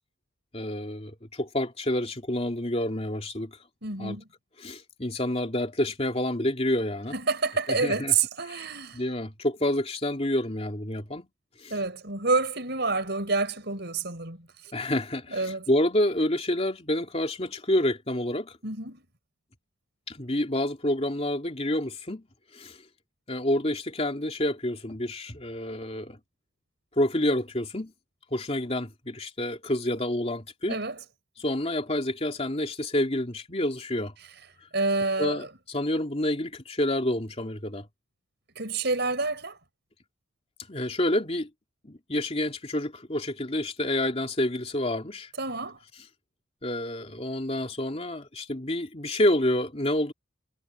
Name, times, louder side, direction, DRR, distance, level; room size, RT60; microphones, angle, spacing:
voice 1, 0.5-3.6 4.0-4.2 4.6-7.1 7.7-8.1 8.5-8.7 8.9-11.3 11.6-11.8 14.7-18.6 20.1-22.2 22.5-22.8 23.3-26.2 27.0-27.9 28.3-30.8 31.4-34.1 35.2-37.9 40.7-41.5 41.8-45.3 46.6-50.1, left 1 dB, 30° left, 2.9 m, -28 dB
voice 2, 3.8-4.3 7.1-9.0 11.7-14.4 15.3-15.6 18.6-19.0 30.7-31.0 34.7-35.5 38.6-39.5 45.4-45.8, right 3 dB, 60° right, 6.6 m, -28 dB
head